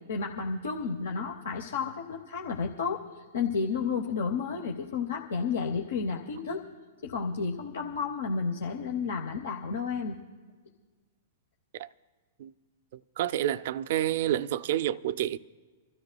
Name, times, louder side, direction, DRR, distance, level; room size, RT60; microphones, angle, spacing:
voice 1, 0.1-6.6 7.0-10.2, left 5 dB, 75° left, 0.8 m, -32 dB
voice 2, 12.9-15.4, right 12 dB, 60° right, 0.3 m, -29 dB
29.0 x 13.0 x 2.2 m
hypercardioid pair, 115°, 0 cm